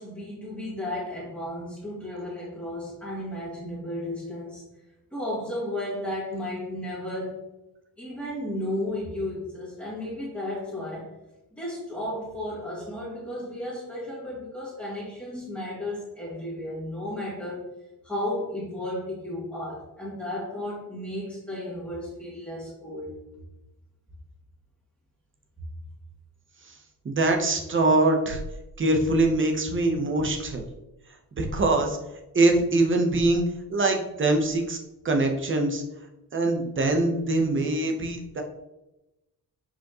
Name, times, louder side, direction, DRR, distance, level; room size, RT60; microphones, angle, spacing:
voice 1, 0.0-4.6 5.1-7.5 8.0-11.1 11.5-17.6 18.0-23.2, left 1 dB, 5° left, -10 dB, 2.2 m, -34 dB
voice 2, 27.0-28.4 28.8-30.7 31.4-32.0 32.3-33.4 33.7-34.8 35.0-35.8 36.3-38.4, right 2 dB, 35° right, 4 dB, 1.0 m, -23 dB
7.1 x 5.0 x 3.1 m, 0.96 s
wide cardioid pair, 145°, 36 cm